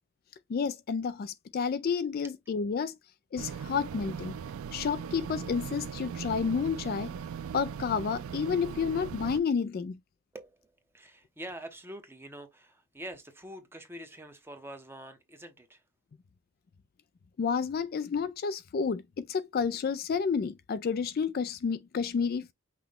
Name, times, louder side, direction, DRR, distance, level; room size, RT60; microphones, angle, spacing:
voice 1, 0.5-2.9 3.3-4.4 4.7-7.1 7.5-10.0 17.4-22.5, left 6 dB, 45° left, 0.3 m, -30 dB
sound 1, 3.4-9.4, right 7 dB, 80° right, 0.3 m, -39 dB
voice 2, 10.3-15.8, right 1 dB, 10° right, 0.8 m, -45 dB
5.8 x 2.2 x 3.5 m
head